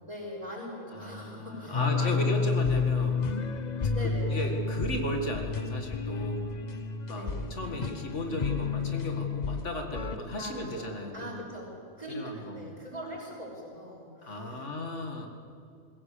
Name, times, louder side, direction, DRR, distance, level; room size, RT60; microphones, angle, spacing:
voice 1, 0.0-3.2 3.9-4.5 7.1-7.5 10.4-11.7 12.0-14.7, equal, 25° right, -3 dB, 6.3 m, -41 dB
voice 2, 0.9-3.3 4.0-6.6 7.1-11.4 12.1-12.6 14.2-15.3, left 1 dB, 75° left, 3 dB, 2.4 m, -35 dB
sound 1, 1.7-10.2, left 4 dB, 40° left, 0.9 m, -30 dB
21.0 x 16.5 x 8.6 m, 2.5 s
omnidirectional pair, 1.2 m